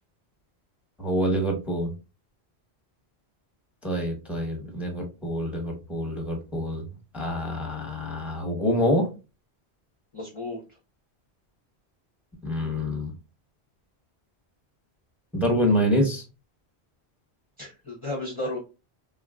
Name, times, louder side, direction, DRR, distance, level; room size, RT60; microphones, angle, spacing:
voice 1, 1.0-1.9 3.8-6.8 7.1-9.0 12.4-13.1 15.3-16.2, equal, ahead, 1 dB, 0.7 m, -26 dB
voice 2, 10.1-10.6 17.6-18.6, left 1 dB, 35° left, -1 dB, 0.6 m, -33 dB
3.5 x 2.3 x 2.3 m, 0.30 s
omnidirectional pair, 1.1 m